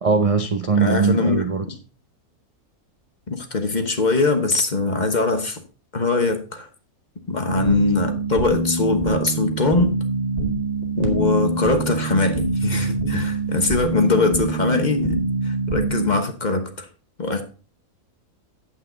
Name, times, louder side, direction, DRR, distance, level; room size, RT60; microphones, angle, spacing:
voice 1, 0.0-1.7, right 5 dB, 45° right, 0.4 m, -20 dB
voice 2, 0.8-1.4 3.3-5.6 5.9-6.7 7.3-10.0 11.0-16.9 17.2-17.4, left 3 dB, 35° left, 1.1 m, -22 dB
sound 1, 7.5-16.2, right 2 dB, 25° right, 1.9 m, -25 dB
8.8 x 8.2 x 3.9 m
omnidirectional pair, 1.6 m